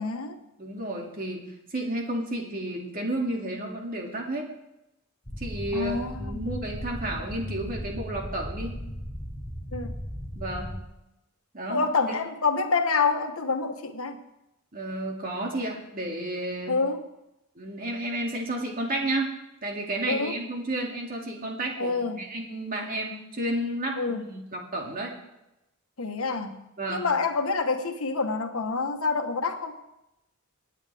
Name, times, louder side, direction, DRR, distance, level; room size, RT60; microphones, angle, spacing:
voice 1, 0.0-0.4 5.7-6.4 9.7-9.9 11.7-14.2 16.7-17.1 20.1-20.4 21.8-22.2 24.0-24.2 26.0-26.6 26.9-29.8, left 4 dB, 80° left, 6 dB, 1.3 m, -27 dB
voice 2, 0.6-4.5 5.4-8.8 10.4-10.8 11.5-12.2 14.7-16.8 17.6-19.4 19.6-25.2 26.8-27.1, right 1 dB, 40° right, 0 dB, 2.4 m, -32 dB
sound 1, 5.3-10.8, equal, 20° left, 1.5 m, -36 dB
25.0 x 8.9 x 3.5 m, 0.91 s
head